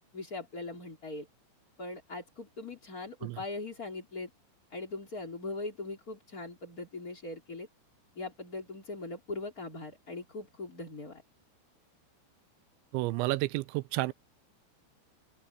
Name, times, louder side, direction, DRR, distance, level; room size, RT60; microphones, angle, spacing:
voice 1, 0.1-1.3 1.8-4.3 4.7-7.7 8.2-11.2, left 3 dB, 20° left, 3.6 m, -40 dB
voice 2, 12.9-14.1, right 20 dB, 80° right, 2.9 m, -30 dB
open air
omnidirectional pair, 5.4 m